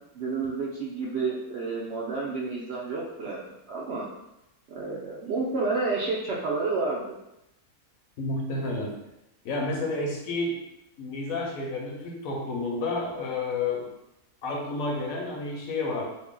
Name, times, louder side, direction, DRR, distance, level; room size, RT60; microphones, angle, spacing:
voice 1, 0.1-4.1 4.7-7.1, right 3 dB, 70° right, -4 dB, 0.6 m, -30 dB
voice 2, 8.2-8.9 9.4-10.6 11.0-13.9 14.4-16.0, left 2 dB, 70° left, 0 dB, 1.0 m, -30 dB
2.7 x 2.7 x 3.6 m, 0.88 s
omnidirectional pair, 1.6 m